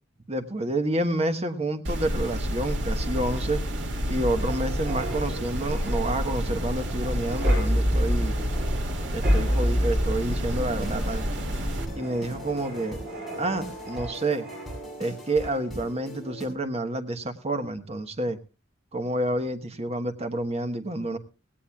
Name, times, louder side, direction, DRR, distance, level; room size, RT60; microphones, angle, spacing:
voice 1, 0.3-3.6 4.1-8.3 9.1-11.2 12.0-13.0 13.4-14.5 15.0-18.4 18.9-21.2, right 1 dB, 35° right, 8 dB, 1.3 m, -29 dB
sound 1, 1.8-11.9, equal, 80° right, 2.2 m, -29 dB
sound 2, 2.8-15.1 15.4-15.7, equal, 60° right, 6.9 m, -30 dB
sound 3, 10.5-16.5, equal, ahead, 6.2 m, -40 dB
19.0 x 17.5 x 2.3 m, 0.28 s
head